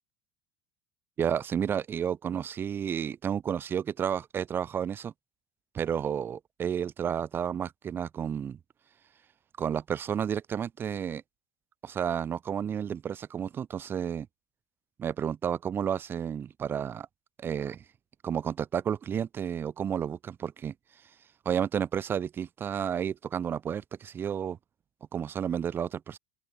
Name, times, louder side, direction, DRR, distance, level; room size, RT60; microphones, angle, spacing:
voice 1, 1.2-5.1 5.7-8.6 9.6-11.2 11.8-14.3 15.0-17.1 17.4-17.8 18.2-20.7 21.4-24.6 25.1-26.2, right 8 dB, 20° right, 1.2 m, -31 dB
open air
cardioid pair, 170°, 10 cm